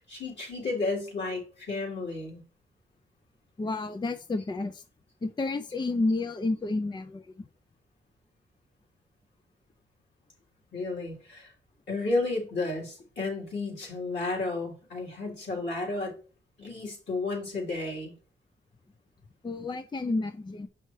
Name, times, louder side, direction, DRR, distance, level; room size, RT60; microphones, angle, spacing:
voice 1, 0.1-2.4 10.7-11.5 11.9-16.1 16.6-18.1, left 3 dB, 65° left, 3.7 m, -32 dB
voice 2, 3.6-4.8 5.2-7.5 19.4-20.7, left 2 dB, 20° left, 0.5 m, -30 dB
6.5 x 5.6 x 3.2 m
cardioid pair, 65°, 20 cm